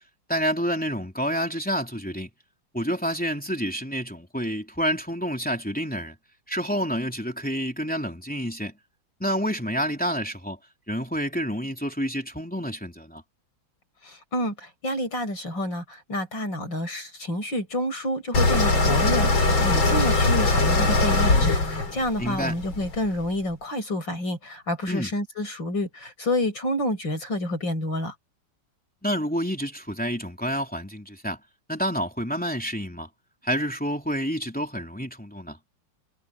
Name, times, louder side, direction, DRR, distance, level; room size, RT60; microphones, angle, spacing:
voice 1, 0.3-2.3 2.7-6.1 6.5-8.7 9.2-10.6 10.9-13.2 22.2-22.6 24.9-25.1 29.0-31.4 31.7-33.1 33.4-35.6, equal, 5° left, 3.3 m, -28 dB
voice 2, 14.1-14.5 14.8-28.1, left 1 dB, 70° left, 7.7 m, -29 dB
sound 1, 18.3-23.3, left 2 dB, 90° left, 4.9 m, -21 dB
omnidirectional pair, 2.1 m